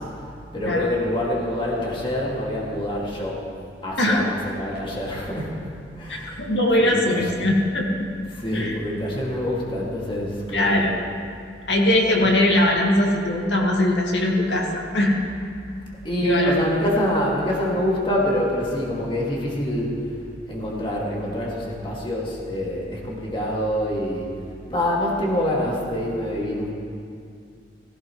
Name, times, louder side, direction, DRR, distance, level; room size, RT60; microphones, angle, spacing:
voice 1, 0.0-3.5 3.8-6.5 6.8-7.3 8.3-10.9 12.2-12.4 16.0-20.1 20.5-24.3 24.7-26.7, left 1 dB, 30° left, -4 dB, 2.2 m, -26 dB
voice 2, 6.1-7.9 8.5-8.7 10.5-10.9 11.7-15.2 16.2-16.5, left 1 dB, 80° left, -2 dB, 2.2 m, -20 dB
16.5 x 15.5 x 3.2 m, 2.3 s
head